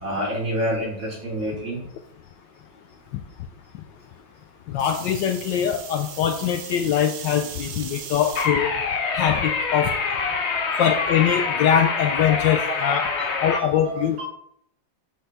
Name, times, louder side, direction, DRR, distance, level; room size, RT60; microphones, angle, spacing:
voice 1, 0.0-1.8 10.2-10.3 12.5-12.8 13.0-14.2, equal, 35° right, -5 dB, 3.0 m, -29 dB
voice 2, 4.7-8.7 9.1-9.9 10.8-13.1 13.4-14.2, left 9 dB, 75° left, 6 dB, 1.2 m, -22 dB
sound 1, 4.8-8.5 9.1-9.6 10.9-11.0, right 7 dB, 70° right, 1.5 m, -38 dB
sound 2, 8.3-13.6, left 4 dB, 55° left, 0.7 m, -25 dB
6.8 x 6.4 x 3.4 m, 0.69 s
omnidirectional pair, 2.2 m